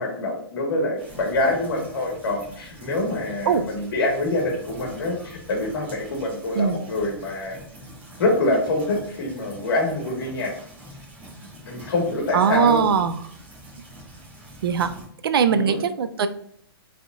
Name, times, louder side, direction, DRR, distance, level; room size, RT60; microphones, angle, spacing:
voice 1, 0.0-7.6 8.2-10.5 11.6-12.8 15.5-15.8, left 2 dB, 60° left, 1 dB, 1.5 m, -25 dB
sound 1, 1.0-15.1, right 1 dB, 10° right, 1.0 m, -44 dB
voice 2, 12.3-13.2 14.6-15.0 15.2-16.3, right 6 dB, 65° right, 11 dB, 0.5 m, -20 dB
4.8 x 3.6 x 2.4 m, 0.68 s
hypercardioid pair, 175°, 13 cm